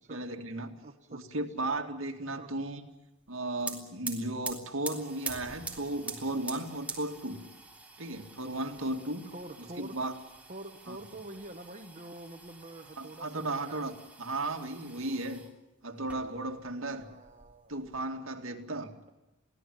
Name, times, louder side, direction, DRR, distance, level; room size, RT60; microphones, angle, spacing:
voice 1, 0.1-0.7 1.1-2.8 3.3-7.4 8.0-9.2 9.6-10.1 10.9-11.0 13.0-15.4 15.8-17.1 17.7-18.9, right 2 dB, 70° right, 4 dB, 2.3 m, -35 dB
voice 2, 0.8-1.4 2.4-2.5 9.2-10.0 10.5-13.9 16.9-17.8, right 2 dB, 35° right, 5 dB, 1.2 m, -46 dB
sound 1, 3.3-3.4 3.6-15.5 16.0-16.7 17.0-18.0, right 3 dB, 5° right, 3.4 m, -45 dB
23.5 x 17.0 x 9.1 m, 1.0 s
head